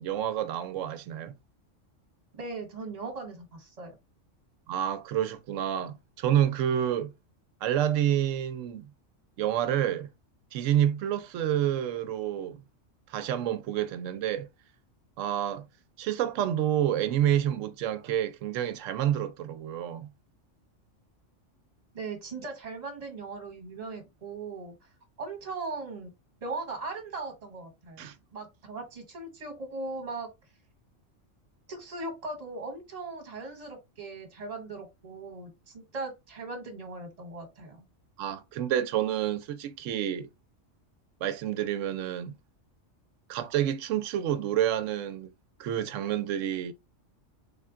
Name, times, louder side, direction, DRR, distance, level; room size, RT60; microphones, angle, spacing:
voice 1, 0.0-1.3 4.7-7.1 7.6-8.9 9.4-10.1 10.5-12.6 13.1-14.5 15.2-15.7 16.0-20.1 28.0-28.1 38.2-40.3 41.2-42.4 43.3-45.3 45.6-46.7, right 11 dB, 80° right, 0.9 m, -28 dB
voice 2, 2.3-3.9 21.9-24.7 25.2-26.1 26.4-30.3 31.7-37.8, right 3 dB, 30° right, 1.2 m, -39 dB
3.8 x 2.2 x 3.6 m
omnidirectional pair, 1.3 m